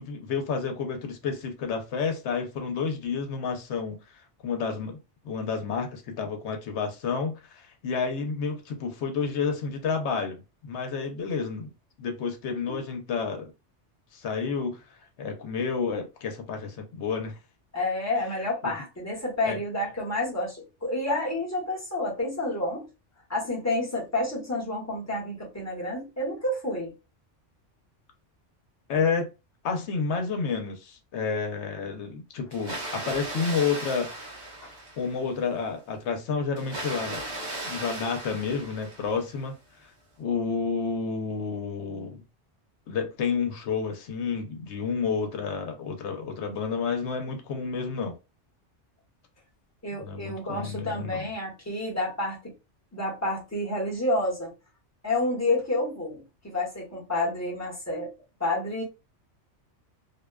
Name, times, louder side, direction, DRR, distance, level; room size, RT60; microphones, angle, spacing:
voice 1, 0.0-5.0 5.2-11.7 12.0-13.5 14.1-14.8 15.2-17.4 18.6-18.7 19.4-19.6 28.9-29.3 29.6-34.1 35.0-37.2 37.6-39.5 39.8-39.9 40.2-42.2 42.9-48.1 50.0-51.3, left 5 dB, 70° left, 0.9 m, -30 dB
voice 2, 17.7-22.9 23.3-26.9 49.8-52.5 52.9-54.5 55.0-58.1 58.4-58.8, left 1 dB, 15° left, 0.8 m, -29 dB
Water, 32.5-35.3 36.6-39.4, right 1 dB, 40° right, 0.8 m, -37 dB
2.5 x 2.2 x 2.2 m
omnidirectional pair, 1.2 m